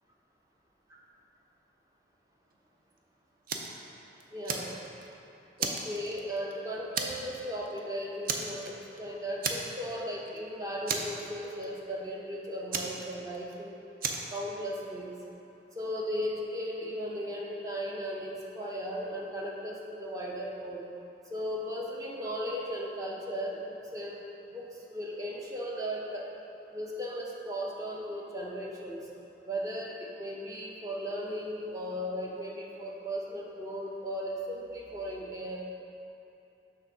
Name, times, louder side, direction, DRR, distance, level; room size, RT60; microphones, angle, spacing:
Fire, 3.5-3.8 4.2-5.1 5.6-6.5 6.9-7.4 7.6-7.8 8.2-9.0 9.4-10.0 10.3-10.4 10.9-11.7 12.7-13.5 14.0-14.4, right 5 dB, 50° right, 0.5 m, -34 dB
voice 1, 4.3-4.7 5.6-13.8 14.3-15.1 15.7-20.8 21.3-26.3 26.7-29.0 29.4-35.6, equal, 20° right, -3 dB, 0.7 m, -36 dB
6.5 x 3.6 x 5.9 m, 2.9 s
head